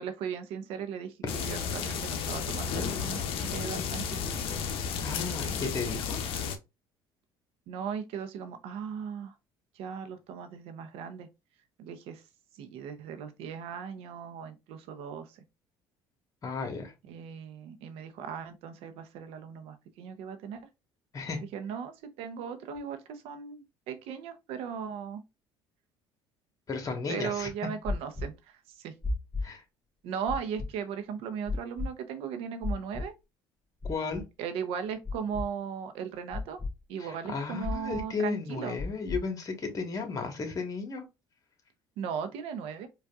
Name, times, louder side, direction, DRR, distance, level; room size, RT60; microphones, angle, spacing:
voice 1, 0.0-4.5 7.7-9.3 9.8-11.3 11.8-12.2 12.5-15.4 17.1-20.6 21.5-25.2 27.1-28.9 30.0-33.1 34.4-36.6 36.9-38.8 42.0-42.9, right 7 dB, 75° right, 0.7 m, -37 dB
sound 1, 1.3-6.6, left 6 dB, 65° left, 0.6 m, -33 dB
voice 2, 5.0-6.2 16.4-16.9 21.1-21.4 26.7-27.5 29.4-29.6 33.8-34.2 37.0-41.0, left 4 dB, 35° left, 1.3 m, -34 dB
sound 2, 27.9-28.3 29.0-29.4 30.3-30.7 31.5-31.9 32.6-33.0 33.8-34.2 35.0-35.4 36.3-36.7 37.6-38.0 38.8-39.2, left 3 dB, 5° left, 1.4 m, -32 dB
4.7 x 2.5 x 2.4 m
supercardioid pair, 80°, 10 cm